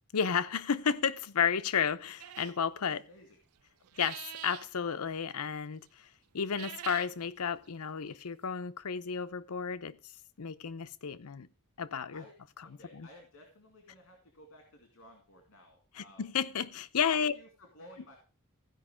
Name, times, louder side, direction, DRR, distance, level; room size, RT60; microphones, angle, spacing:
voice 1, 0.1-3.0 4.0-5.8 6.3-10.0 10.4-11.5 11.8-12.2 12.9-13.1 16.0-17.3, left 7 dB, 85° left, 0.7 m, -32 dB
sound 1, 2.2-2.6 3.8-4.7 6.4-7.1, right 12 dB, 75° right, 0.5 m, -44 dB
voice 2, 2.9-3.4 12.1-16.2 17.1-18.2, left 1 dB, 60° left, 2.3 m, -56 dB
15.0 x 5.3 x 5.0 m
head